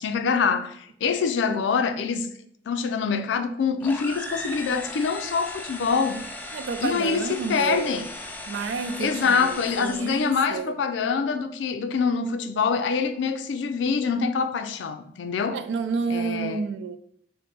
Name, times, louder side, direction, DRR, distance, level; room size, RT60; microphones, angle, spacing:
voice 1, 0.0-2.3 2.7-6.2 6.8-8.1 9.0-15.6 16.1-16.6, left 5 dB, 85° left, 0.4 m, -25 dB
sound 1, 3.8-10.5, left 1 dB, 10° left, 0.3 m, -37 dB
voice 2, 6.5-8.0 8.5-10.7 15.5-17.0, right 5 dB, 80° right, 0.3 m, -30 dB
3.4 x 2.1 x 4.0 m
head